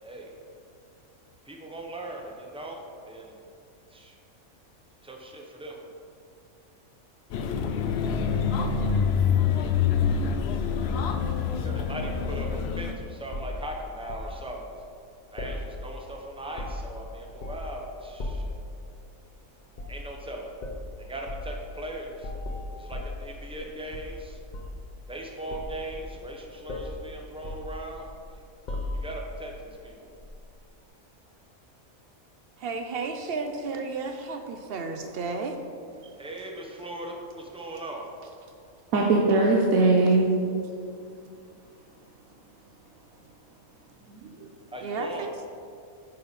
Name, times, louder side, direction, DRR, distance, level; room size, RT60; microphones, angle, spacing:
voice 1, 1.4-3.4 3.9-4.1 5.0-5.8 11.6-12.5 12.7-14.8 15.3-18.5 19.9-20.5 21.0-22.3 22.8-24.4 25.1-28.4 28.9-30.1 36.2-38.5 44.7-45.3, right 1 dB, 5° right, 0 dB, 0.6 m, -39 dB
sound 1, 7.3-12.9, left 6 dB, 65° left, 0.6 m, -26 dB
sound 2, 13.3-14.3 15.4-16.1 16.4-17.0 17.4-17.8 18.2-18.6 19.7-20.0 20.6-20.8 21.3-21.5 22.2-23.6 23.9-24.9 25.5-26.4 26.7-27.0 27.4-28.2 28.7-29.3 30.2-30.4, left 2 dB, 40° left, 0.8 m, -36 dB
voice 2, 32.6-35.6 36.0-36.1 44.8-45.3, right 4 dB, 60° right, 6 dB, 0.7 m, -33 dB
voice 3, 38.9-40.3 44.1-44.5, right 3 dB, 85° right, -1 dB, 1.2 m, -21 dB
9.5 x 5.4 x 4.1 m, 2.4 s
omnidirectional pair, 1.5 m